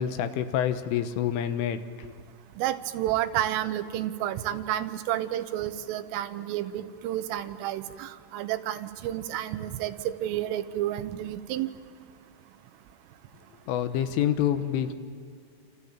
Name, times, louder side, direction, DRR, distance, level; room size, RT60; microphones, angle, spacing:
voice 1, 0.0-2.2 13.7-14.9, left 10 dB, 80° left, 9 dB, 3.7 m, -27 dB
voice 2, 2.6-11.7, right 12 dB, 85° right, 11 dB, 3.6 m, -30 dB
28.0 x 28.0 x 7.4 m, 2.2 s
omnidirectional pair, 5.7 m